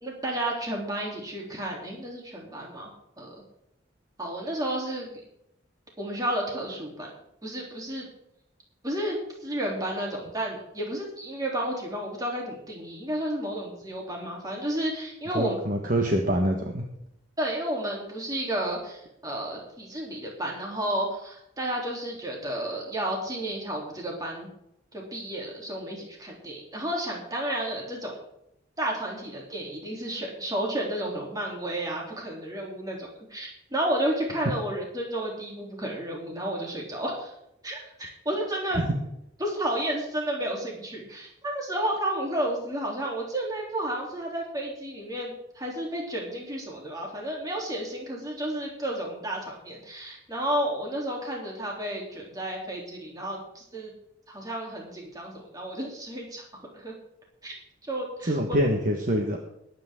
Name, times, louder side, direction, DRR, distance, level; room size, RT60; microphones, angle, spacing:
voice 1, 0.0-2.9 3.2-3.3 4.2-5.2 6.0-7.1 7.4-8.1 8.8-15.5 17.4-24.5 24.9-28.2 28.8-37.3 37.6-38.8 39.4-53.9 54.3-56.9 57.4-57.5 57.9-58.6, right 1 dB, 20° right, -2 dB, 3.3 m, -32 dB
voice 2, 15.3-16.8 38.7-38.9 58.2-59.4, equal, 50° right, 2 dB, 1.5 m, -25 dB
21.5 x 9.2 x 3.7 m, 0.78 s
head